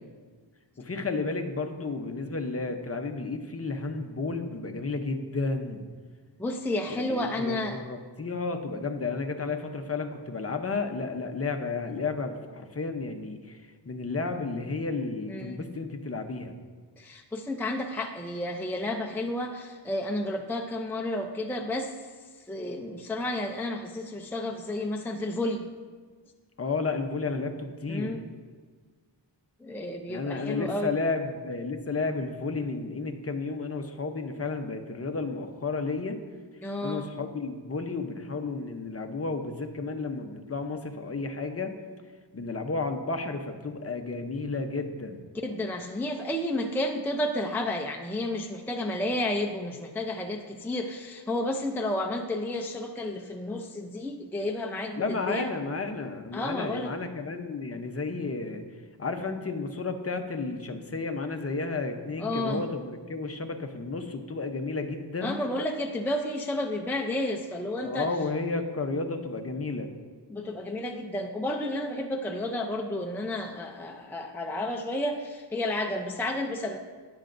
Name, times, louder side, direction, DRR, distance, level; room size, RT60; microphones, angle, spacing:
voice 1, 0.8-5.8 6.9-16.5 26.6-28.1 30.1-36.2 36.8-41.8 42.3-45.2 55.0-58.6 59.0-65.4 67.8-69.9, left 3 dB, 35° left, 5 dB, 0.8 m, -32 dB
voice 2, 6.4-7.8 15.3-15.7 17.0-22.1 22.4-25.7 27.9-28.3 29.6-30.9 36.6-37.1 45.3-55.5 56.3-56.9 62.2-62.6 65.2-68.1 70.3-76.8, left 1 dB, 5° left, 2 dB, 0.5 m, -31 dB
20.5 x 7.7 x 2.6 m, 1.5 s
wide cardioid pair, 165°, 43 cm